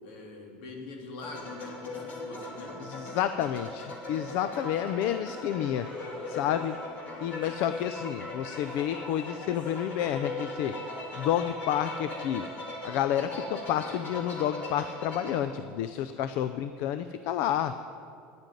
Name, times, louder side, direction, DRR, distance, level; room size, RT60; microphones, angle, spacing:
voice 1, 0.0-2.8, left 3 dB, 75° left, 1 dB, 2.6 m, -43 dB
sound 1, 1.2-15.4, left 2 dB, 40° left, 2.7 m, -39 dB
voice 2, 2.8-5.9 6.3-6.8 7.2-10.7 11.1-12.4 12.8-17.7, left 10 dB, 55° left, 11 dB, 0.4 m, -30 dB
sound 2, 5.6-12.6, left 1 dB, 20° left, 4.0 m, -51 dB
9.7 x 9.0 x 9.2 m, 2.4 s
cardioid pair, 155°, 5 cm